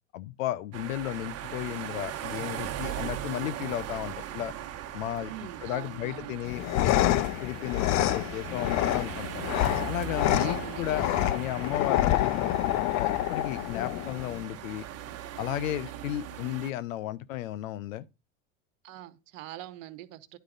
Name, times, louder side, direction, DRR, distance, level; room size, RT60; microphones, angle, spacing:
voice 1, 0.1-4.5 4.9-9.4 9.9-11.0 11.3-14.8 15.4-18.0, left 13 dB, 85° left, 0.7 m, -34 dB
sound 1, 0.7-16.7, right 10 dB, 40° right, 1.1 m, -39 dB
voice 2, 5.2-6.4 10.3-10.9 11.1-11.3 18.8-20.4, right 14 dB, 75° right, 1.0 m, -43 dB
sound 2, 6.5-14.4, left 14 dB, 45° left, 0.6 m, -28 dB
10.5 x 4.9 x 3.9 m
hypercardioid pair, 100°, 39 cm